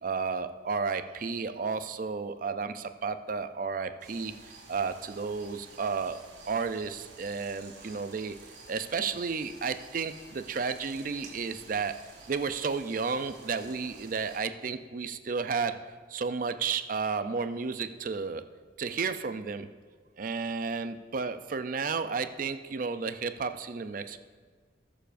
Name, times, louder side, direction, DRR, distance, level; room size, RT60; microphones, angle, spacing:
voice 1, 0.0-6.2 6.5-8.3 8.7-11.9 12.3-15.8 16.1-18.4 18.8-19.7 20.2-24.2, right 5 dB, 45° right, 10 dB, 0.4 m, -32 dB
sound 1, 4.0-14.4, right 3 dB, 75° right, 2.9 m, -51 dB
19.5 x 6.8 x 2.6 m, 1.5 s
head